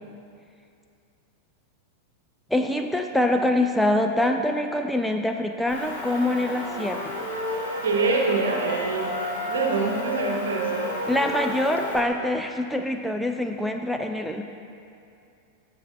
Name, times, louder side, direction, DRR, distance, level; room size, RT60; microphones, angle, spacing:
voice 1, 2.5-7.3 11.1-14.4, left 1 dB, ahead, 4 dB, 0.4 m, -25 dB
Motor vehicle (road) / Engine, 5.7-12.0, left 1 dB, 55° left, 1.9 m, -35 dB
sound 1, 6.4-12.2, equal, 85° left, 1.3 m, -32 dB
voice 2, 7.8-10.9, right 4 dB, 65° right, 1 dB, 1.0 m, -25 dB
14.5 x 5.6 x 2.6 m, 2.5 s
figure-of-eight pair, 90°, 0 cm